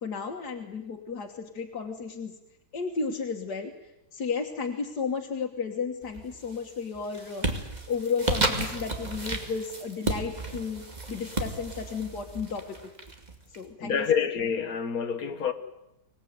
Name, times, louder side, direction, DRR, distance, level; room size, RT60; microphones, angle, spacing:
voice 1, 0.0-2.4 2.7-3.7 4.1-7.5 7.9-12.9 13.5-14.1, left 5 dB, 90° left, 2.1 m, -33 dB
sound 1, 6.1-6.6 6.9-13.6, right 2 dB, 25° right, 2.4 m, -33 dB
voice 2, 13.8-15.5, left 7 dB, 65° left, 2.0 m, -27 dB
25.5 x 18.5 x 9.5 m
omnidirectional pair, 1.7 m